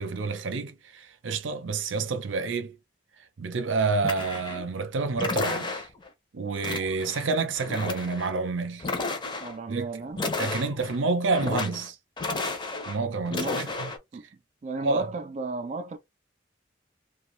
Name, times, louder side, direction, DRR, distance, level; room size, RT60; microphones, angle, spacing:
voice 1, 0.0-2.8 3.4-5.9 6.3-8.9 9.7-9.9 10.4-12.0 12.9-13.9 14.8-15.1, right 4 dB, 85° right, 0.6 m, -28 dB
sound 1, 4.0-4.7 5.2-6.1 6.6-7.3 7.5-8.3 8.8-9.6 10.1-11.0 11.3-11.9 12.2-13.0 13.3-14.0, left 3 dB, 25° left, 0.6 m, -32 dB
voice 2, 9.4-10.2 13.3-13.7 14.1-14.3 14.6-16.0, right 3 dB, 40° right, 0.4 m, -34 dB
2.6 x 2.2 x 3.0 m
head